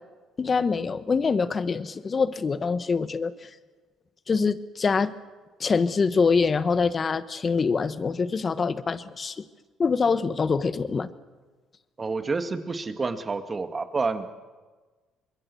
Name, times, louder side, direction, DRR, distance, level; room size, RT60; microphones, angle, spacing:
voice 1, 0.4-3.3 4.3-5.1 5.6-9.4 9.8-11.1, left 5 dB, 35° left, 13 dB, 1.2 m, -24 dB
voice 2, 12.0-14.3, right 4 dB, 30° right, 8 dB, 1.9 m, -29 dB
25.5 x 21.5 x 7.1 m, 1.3 s
supercardioid pair, 80°, 0 cm